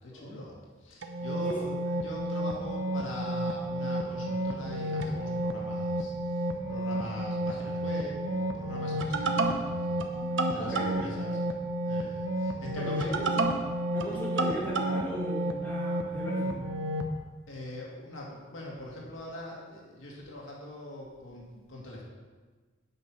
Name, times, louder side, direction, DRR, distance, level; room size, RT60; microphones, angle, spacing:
voice 1, 0.0-10.0 10.4-11.4 11.8-13.1 17.5-22.0, left 1 dB, 85° left, -3 dB, 2.3 m, -42 dB
sound 1, 1.0-17.1, right 1 dB, 70° right, 0.8 m, -31 dB
voice 2, 10.6-11.1 12.8-13.5 13.9-16.6, equal, 10° left, -6 dB, 2.3 m, -37 dB
9.2 x 6.0 x 5.6 m, 1.4 s
head